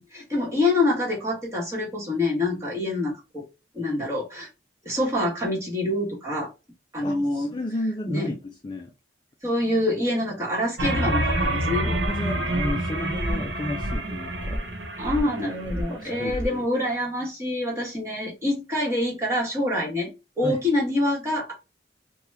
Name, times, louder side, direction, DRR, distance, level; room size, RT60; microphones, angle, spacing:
voice 1, 0.0-3.5 3.7-4.5 4.8-6.5 6.9-7.5 8.1-8.3 9.4-11.9 15.0-20.1 20.4-21.5, left 1 dB, 15° right, 1.4 m, -26 dB
voice 2, 7.0-8.9 12.1-14.6 15.9-16.6 20.4-20.6, left 1 dB, 25° left, 0.4 m, -32 dB
sound 1, 10.8-16.5, right 1 dB, 80° right, 1.1 m, -27 dB
2.9 x 2.3 x 3.3 m
head